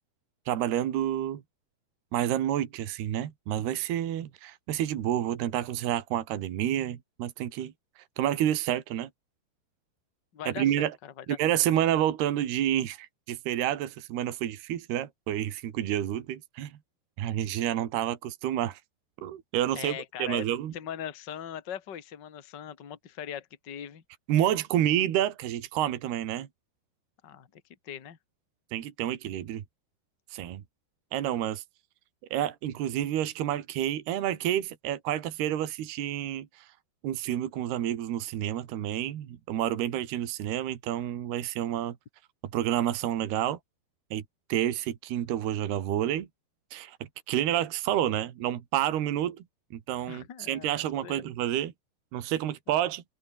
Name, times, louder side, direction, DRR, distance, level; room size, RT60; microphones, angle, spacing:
voice 1, 0.5-1.4 2.1-9.1 10.5-10.9 11.3-16.8 17.2-18.8 19.2-20.7 24.3-26.5 28.7-29.6 30.3-30.6 31.1-31.6 32.3-36.7 37.0-42.0 42.5-43.6 44.1-44.2 44.5-46.3 46.7-47.0 47.3-49.4 49.7-51.7 52.1-53.0, right 11 dB, 70° right, 3.9 m, -29 dB
voice 2, 10.3-11.4 19.8-20.5 20.7-24.0 27.2-28.2 50.1-51.3 52.7-52.8, left 9 dB, 35° left, 2.1 m, -40 dB
omnidirectional pair, 4.9 m